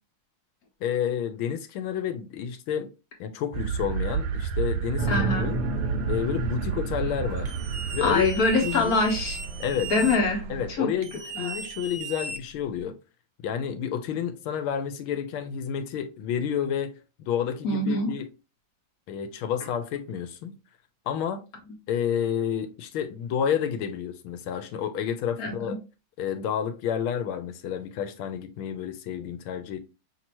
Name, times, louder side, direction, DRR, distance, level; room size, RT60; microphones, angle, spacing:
voice 1, 0.8-2.9 3.2-5.6 6.1-7.5 7.9-8.3 8.6-9.0 9.6-9.9 10.5-13.0 13.4-18.3 19.1-20.6 21.1-21.4 21.9-25.8 26.2-29.8, left 8 dB, 85° left, 1.5 m, -30 dB
sound 1, 3.5-10.7, right 7 dB, 85° right, 1.4 m, -31 dB
sound 2, 5.0-9.1, right 1 dB, 45° right, 1.4 m, -33 dB
voice 2, 5.1-5.5 8.0-9.4 9.9-10.9 11.3-11.5 17.6-18.1 25.4-25.7, left 2 dB, 50° left, 1.4 m, -24 dB
sound 3, 7.5-10.2 11.0-12.8, right 4 dB, 60° right, 0.6 m, -37 dB
5.9 x 2.8 x 2.9 m
omnidirectional pair, 2.3 m